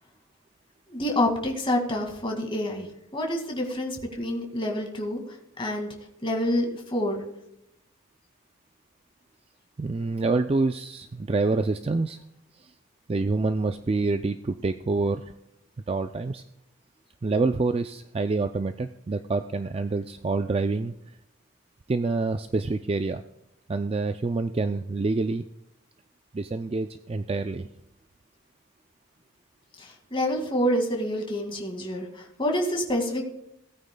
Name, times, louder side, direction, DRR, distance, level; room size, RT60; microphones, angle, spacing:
voice 1, 0.9-2.9 3.1-5.2 5.6-5.9 6.2-7.2 29.8-33.2, left 1 dB, 25° left, 2 dB, 2.0 m, -27 dB
voice 2, 9.8-12.2 12.6-12.7 13.1-15.2 15.9-16.4 17.2-20.9 21.9-23.2 23.7-25.5 26.3-27.7, right 3 dB, 25° right, 8 dB, 0.3 m, -27 dB
18.5 x 9.2 x 2.2 m, 0.84 s
head